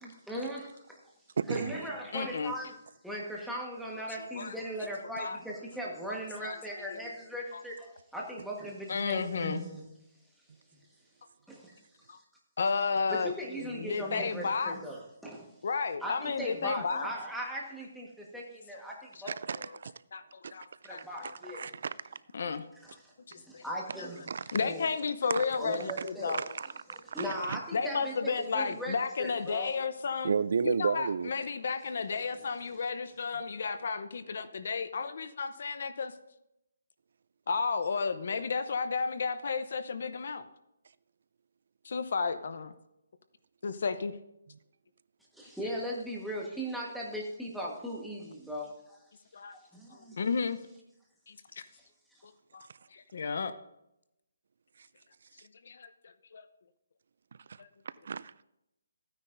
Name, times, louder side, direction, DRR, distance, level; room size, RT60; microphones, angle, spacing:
voice 1, 0.0-1.0 1.5-2.8 3.0-9.9 11.5-11.8 13.1-15.5 16.0-19.3 20.8-21.7 22.8-23.0 23.3-24.2 24.6-24.9 25.6-26.4 27.1-29.7 45.3-49.0 49.5-50.2, equal, ahead, 1.4 m, -38 dB
voice 2, 1.4-1.7 19.3-19.9 20.4-20.5 21.2-22.2 24.3-24.6 25.3-25.4 25.8-25.9 26.3-27.6 30.2-31.3 52.7-52.8 54.8-54.9 57.5-57.6 58.0-58.4, right 6 dB, 55° right, 0.3 m, -33 dB
voice 3, 2.1-2.5 4.3-4.5 5.2-5.4 6.1-6.6 6.9-7.0 7.5-7.6 8.9-9.6 12.1-12.2 12.6-13.3 13.6-14.7 15.6-17.1 19.6-19.7 20.1-21.3 22.3-22.6 23.3-23.6 24.0-24.1 24.5-26.4 27.7-30.4 30.6-36.1 37.5-40.5 41.8-42.7 43.6-44.2 49.3-49.6 49.9-50.6 51.3-51.6 52.2-52.7 52.9-53.5 55.7-55.9 56.3-56.4 57.6-57.7, left 5 dB, 55° left, 0.7 m, -33 dB
14.5 x 9.6 x 2.6 m
hypercardioid pair, 165°, 0 cm